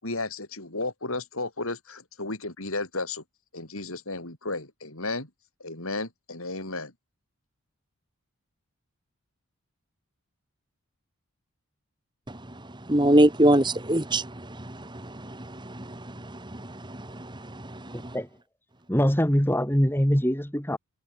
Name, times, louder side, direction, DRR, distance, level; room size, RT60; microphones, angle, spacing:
voice 1, 0.0-3.2 3.5-5.3 5.6-6.9, left 2 dB, 70° left, 5.4 m, -33 dB
voice 2, 12.9-18.0, right 1 dB, 20° right, 2.0 m, -25 dB
voice 3, 18.9-20.8, equal, 10° left, 2.9 m, -23 dB
head